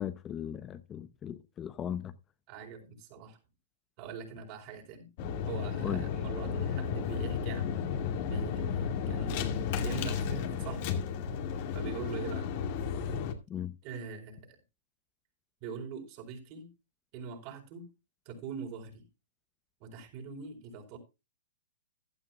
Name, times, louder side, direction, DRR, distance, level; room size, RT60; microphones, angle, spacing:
voice 1, 0.0-2.1 5.8-6.0 13.5-13.7, left 9 dB, 20° left, 0.7 m, -37 dB
voice 2, 2.5-3.4 4.0-5.1 5.5-7.9 8.2-11.0 11.7-12.5 13.8-14.6 15.6-16.7 17.1-17.9 18.3-19.1 19.8-21.0, right 6 dB, 40° right, 4.3 m, -43 dB
sound 1, 5.2-13.3, left 6 dB, 45° left, 2.1 m, -33 dB
15.0 x 11.5 x 2.3 m
hypercardioid pair, 125°, 0 cm